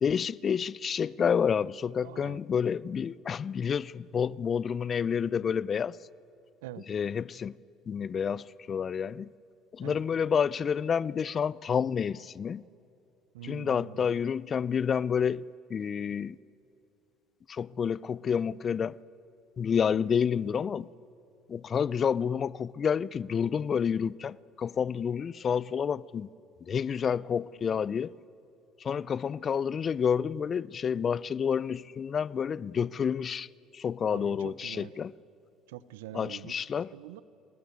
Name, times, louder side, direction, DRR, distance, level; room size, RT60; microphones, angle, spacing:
voice 1, 0.0-6.0 6.9-7.5 7.9-9.3 9.7-12.6 13.4-16.4 17.5-19.0 19.6-20.9 21.5-26.3 26.7-28.1 28.8-33.5 33.7-35.1 36.1-36.9, left 7 dB, 45° left, 0.5 m, -29 dB
voice 2, 2.0-2.4 6.6-6.8 9.8-10.0 13.3-14.2 34.1-34.9 35.7-36.6 36.9-37.2, right 14 dB, 85° right, 0.8 m, -44 dB
28.0 x 20.0 x 9.6 m
hypercardioid pair, 65°, 0 cm